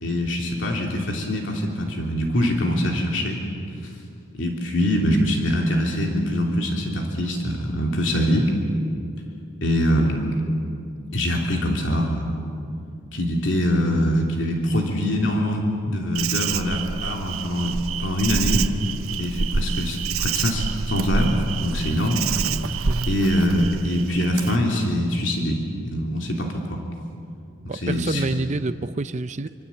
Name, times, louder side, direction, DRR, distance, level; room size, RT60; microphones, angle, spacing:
voice 1, 0.0-3.4 3.8-3.9 4.3-8.5 9.6-10.2 11.1-12.4 13.1-18.7 19.2-22.3 23.1-26.8 27.7-28.2, equal, 60° left, 0 dB, 3.1 m, -23 dB
Insect, 16.1-24.6, right 5 dB, 90° right, 0.8 m, -27 dB
voice 2, 27.7-29.5, right 3 dB, 35° right, 12 dB, 0.5 m, -27 dB
26.5 x 25.5 x 8.5 m, 2.5 s
head